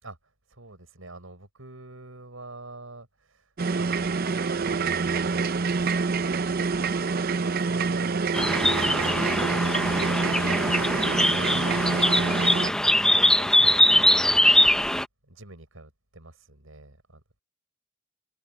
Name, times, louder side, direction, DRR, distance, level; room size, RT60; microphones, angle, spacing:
voice 1, 0.0-7.0 7.4-8.3 8.6-10.8 11.1-14.9 15.3-17.2, right 2 dB, 80° right, 5.9 m, -46 dB
sound 1, 3.6-12.7, right 4 dB, 45° right, 0.6 m, -26 dB
sound 2, 8.3-15.0, left 1 dB, 5° left, 0.6 m, -22 dB
head